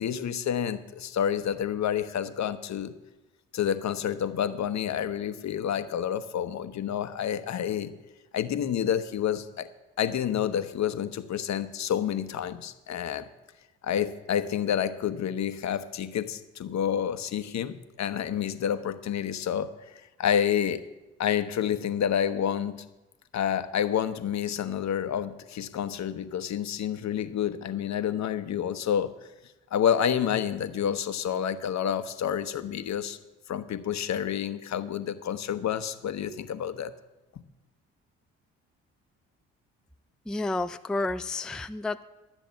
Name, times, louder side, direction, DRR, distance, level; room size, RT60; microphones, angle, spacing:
voice 1, 0.0-2.9 3.5-7.9 8.3-9.7 10.0-13.3 13.8-19.7 20.2-20.8 21.2-22.8 23.3-29.1 29.7-33.2 33.5-36.9, left 9 dB, 55° left, 11 dB, 1.0 m, -29 dB
voice 2, 40.3-42.0, left 2 dB, ahead, 10 dB, 0.5 m, -30 dB
12.5 x 8.1 x 7.1 m, 1.1 s
hypercardioid pair, 50°, 34 cm